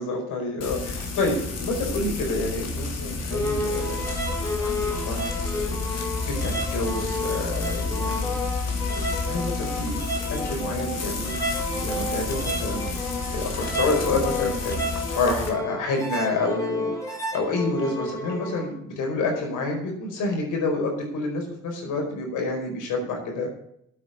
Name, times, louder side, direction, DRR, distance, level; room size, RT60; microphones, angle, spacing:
voice 1, 0.0-4.0 4.6-10.0 10.3-11.4 11.8-12.9 13.3-14.7 15.1-23.5, left 2 dB, 85° left, 1 dB, 4.9 m, -28 dB
Frying (food), 0.6-15.5, left 4 dB, 55° left, 3.0 m, -30 dB
sound 1, 3.3-18.7, left 1 dB, 10° left, 4.0 m, -31 dB
8.7 x 8.6 x 8.1 m, 0.73 s
cardioid pair, 90°, 30 cm